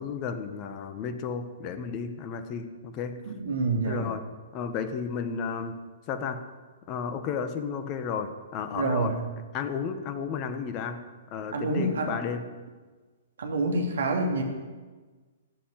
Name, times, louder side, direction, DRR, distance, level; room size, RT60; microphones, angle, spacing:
voice 1, 0.0-3.2 3.8-4.2 4.5-5.8 6.1-6.4 6.9-9.1 9.5-11.0 11.3-12.5, left 6 dB, 35° left, 9 dB, 1.5 m, -33 dB
voice 2, 3.3-4.1 8.7-9.2 11.5-12.2 13.4-14.4, right 2 dB, 70° right, 2 dB, 2.7 m, -27 dB
15.5 x 7.3 x 9.6 m, 1.4 s
figure-of-eight pair, 115°, 0 cm